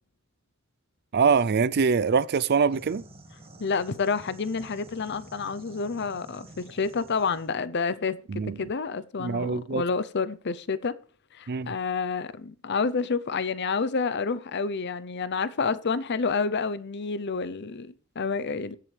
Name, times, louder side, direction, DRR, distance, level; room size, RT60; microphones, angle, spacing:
voice 1, 1.1-3.0 8.3-8.6 9.2-9.8 11.5-11.8, right 5 dB, 50° right, 0.5 m, -24 dB
sound 1, 2.7-7.5, right 1 dB, 30° right, 1.8 m, -49 dB
voice 2, 3.6-10.9 11.3-18.8, left 4 dB, 55° left, 0.7 m, -29 dB
22.5 x 7.6 x 3.3 m
head